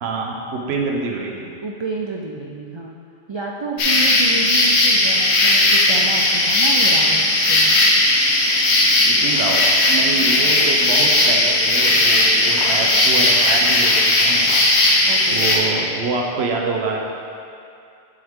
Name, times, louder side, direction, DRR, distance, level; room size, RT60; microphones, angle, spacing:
voice 1, 0.0-1.5 9.0-14.5 15.3-17.0, right 3 dB, 80° right, 0 dB, 1.0 m, -26 dB
voice 2, 1.6-2.9 3.3-7.7 15.1-15.5, right 3 dB, 50° right, -1 dB, 0.3 m, -30 dB
sound 1, 3.8-15.6, left 1 dB, 85° left, 1.2 m, -16 dB
7.8 x 5.5 x 3.6 m, 2.5 s
omnidirectional pair, 1.1 m